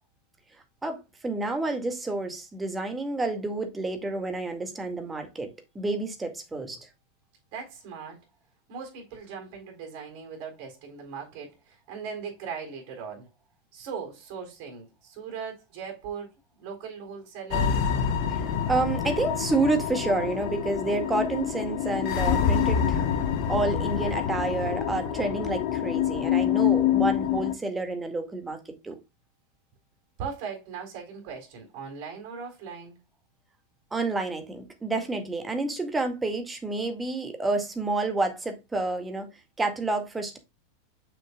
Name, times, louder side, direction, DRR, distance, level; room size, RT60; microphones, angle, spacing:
voice 1, 0.8-6.8 18.7-23.1 23.5-29.0 33.9-39.3 39.6-40.4, right 3 dB, 15° right, 1.9 m, -29 dB
voice 2, 7.5-8.2 8.7-13.3 13.7-16.3 16.6-17.9 30.2-33.0, right 6 dB, 50° right, 3.7 m, -39 dB
sound 1, 17.5-27.5, left 8 dB, 50° left, 1.1 m, -26 dB
6.7 x 6.2 x 2.3 m
figure-of-eight pair, 90°, 0 cm